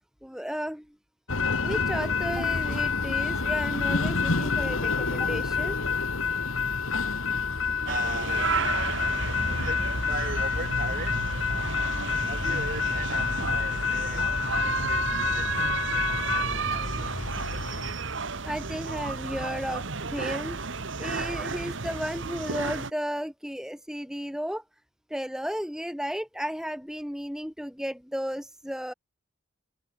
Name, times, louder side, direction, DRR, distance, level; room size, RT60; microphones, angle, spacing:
voice 1, 0.2-0.9 1.6-5.8 18.4-20.6 21.0-24.6 25.1-28.9, equal, 5° right, 2.5 m, -34 dB
sound 1, 1.3-17.9, left 5 dB, 75° left, 1.9 m, -28 dB
voice 2, 7.9-8.6 9.6-11.3 12.3-17.2, right 3 dB, 40° right, 7.5 m, -39 dB
sound 2, 7.9-22.9, right 4 dB, 60° right, 1.4 m, -32 dB
head